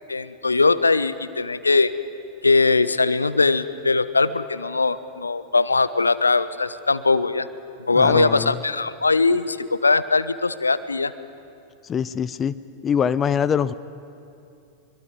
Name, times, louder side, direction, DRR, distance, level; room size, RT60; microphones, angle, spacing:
voice 1, 0.1-1.9 2.4-7.5 7.9-11.1, left 3 dB, 80° left, 15 dB, 0.8 m, -20 dB
voice 2, 7.9-8.5 11.9-12.5 12.8-13.7, left 7 dB, 25° left, 15 dB, 0.7 m, -23 dB
24.5 x 23.0 x 9.6 m, 2.6 s
figure-of-eight pair, 90°, 0 cm